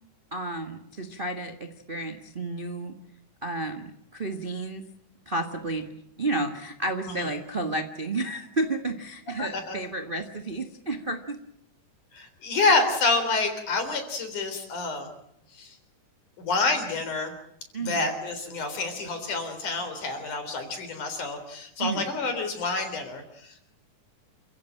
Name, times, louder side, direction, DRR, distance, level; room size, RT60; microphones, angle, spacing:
voice 1, 0.3-3.0 3.4-4.8 5.2-5.9 6.2-11.4 17.7-18.0 21.8-22.0, right 2 dB, 30° right, 6 dB, 1.0 m, -31 dB
voice 2, 9.4-9.8 12.1-15.1 15.5-15.7 16.4-17.3 17.8-23.6, left 3 dB, 65° left, 7 dB, 5.2 m, -28 dB
28.5 x 16.0 x 9.0 m, 0.76 s
omnidirectional pair, 3.8 m